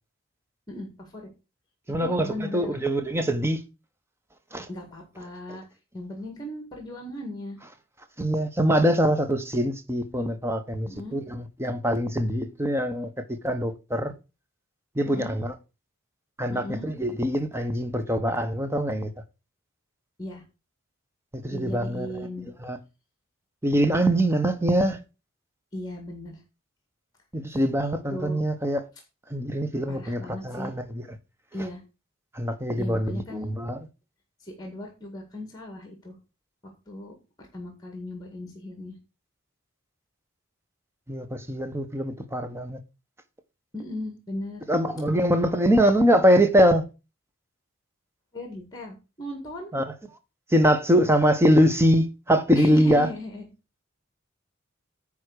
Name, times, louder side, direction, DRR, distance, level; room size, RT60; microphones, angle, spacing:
voice 1, 0.7-1.3 2.0-2.8 4.7-5.6 5.9-7.6 10.9-11.2 15.1-15.3 16.5-16.9 20.2-20.4 21.5-22.5 25.7-26.4 28.1-28.4 29.9-30.7 31.5-31.8 32.8-33.5 34.4-36.2 36.9-38.9 43.7-44.7 48.3-49.7 52.6-53.5, left 1 dB, 20° left, 1.9 m, -37 dB
voice 2, 1.9-3.6 4.5-4.7 5.5-5.6 8.2-14.1 15.0-15.5 16.4-19.1 21.3-22.3 22.6-22.8 23.6-25.0 27.3-28.8 29.3-31.0 32.3-33.8 41.1-42.8 44.7-46.8 49.7-49.8 50.5-53.1, equal, 10° right, 1.0 m, -23 dB
9.5 x 3.6 x 6.5 m
head